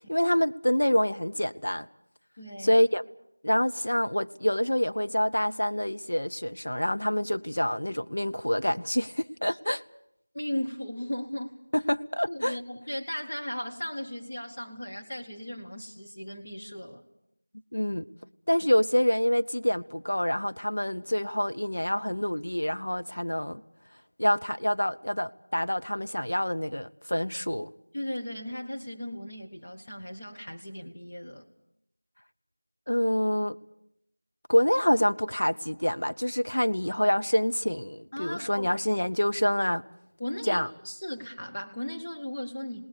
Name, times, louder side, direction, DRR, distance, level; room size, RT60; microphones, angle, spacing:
voice 1, 0.1-1.9 2.6-3.0 3.4-9.8 11.7-12.6 17.7-18.1 18.5-23.6 24.2-27.7 32.9-33.6 34.5-39.8 40.5-40.7, equal, 65° left, 10 dB, 0.8 m, -26 dB
voice 2, 2.4-2.8 9.5-9.6 10.3-11.5 12.3-17.0 27.9-31.5 38.1-38.7 40.2-42.9, left 1 dB, 20° left, -1 dB, 0.8 m, -36 dB
27.5 x 19.0 x 6.9 m, 0.78 s
figure-of-eight pair, 180°, 0 cm